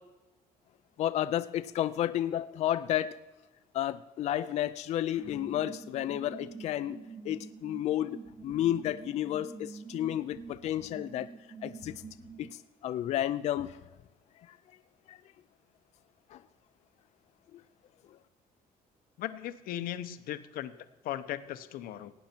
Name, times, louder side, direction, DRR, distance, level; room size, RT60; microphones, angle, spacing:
voice 1, 1.0-3.1 3.7-7.0 7.3-11.3 11.6-11.9 12.4-12.5 12.8-13.8 15.1-15.2 16.3-16.4, left 12 dB, 45° left, 12 dB, 0.4 m, -31 dB
sound 1, 5.2-12.5, right 4 dB, 30° right, 1.0 m, -47 dB
voice 2, 19.2-20.7 21.0-22.1, left 12 dB, 70° left, 12 dB, 0.8 m, -37 dB
17.5 x 9.2 x 4.4 m, 1.1 s
cardioid pair, 160°, 16 cm